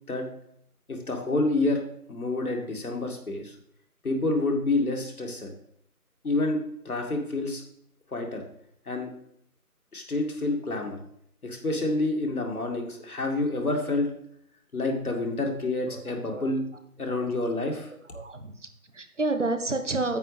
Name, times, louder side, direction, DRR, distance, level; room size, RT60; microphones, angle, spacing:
voice 1, 0.9-1.8 2.1-3.5 4.0-5.5 6.2-7.6 8.1-8.4 8.9-9.1 9.9-11.0 11.4-14.1 14.7-16.6 17.0-17.9, left 2 dB, 70° left, 2 dB, 2.2 m, -28 dB
voice 2, 18.1-20.2, right 2 dB, 50° right, 7 dB, 1.1 m, -30 dB
9.3 x 8.5 x 3.2 m, 0.72 s
figure-of-eight pair, 175°, 46 cm